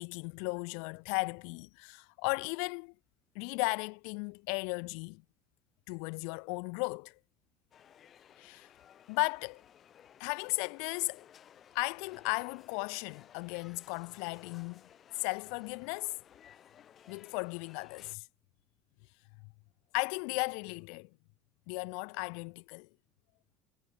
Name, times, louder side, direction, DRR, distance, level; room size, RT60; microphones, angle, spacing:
voice 1, 0.0-2.9 3.3-5.2 5.9-7.2 8.4-8.7 9.1-9.6 10.2-11.2 11.7-14.8 15.1-16.1 17.1-18.3 19.4-19.5 19.9-21.1 21.7-22.9, left 40 dB or more, 80° left, 1.5 m, -36 dB
sound 1, 7.7-18.2, left 9 dB, 40° left, 7.6 m, -58 dB
supercardioid pair, 110°, 0 cm